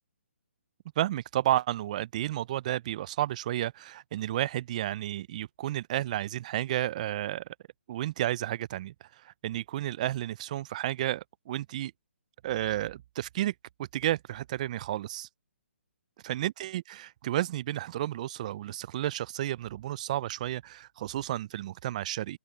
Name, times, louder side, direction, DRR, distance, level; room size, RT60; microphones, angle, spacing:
voice 1, 1.0-7.5 7.9-8.9 9.2-11.9 12.4-13.5 13.9-15.3 16.2-22.4, right 13 dB, 35° right, 0.4 m, -32 dB
open air
hypercardioid pair, 150°, 7 cm